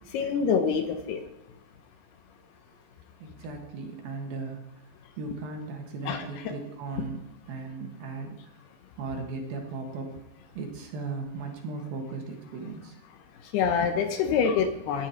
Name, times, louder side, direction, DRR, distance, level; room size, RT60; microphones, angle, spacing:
voice 1, 0.1-1.2 6.1-6.5 13.5-15.1, left 6 dB, 75° left, 7 dB, 2.7 m, -26 dB
voice 2, 3.2-4.6 5.2-7.2 7.5-8.4 9.0-10.1 10.5-13.0, right 3 dB, 65° right, 2 dB, 3.0 m, -37 dB
16.5 x 10.0 x 4.4 m, 1.0 s
omnidirectional pair, 5.1 m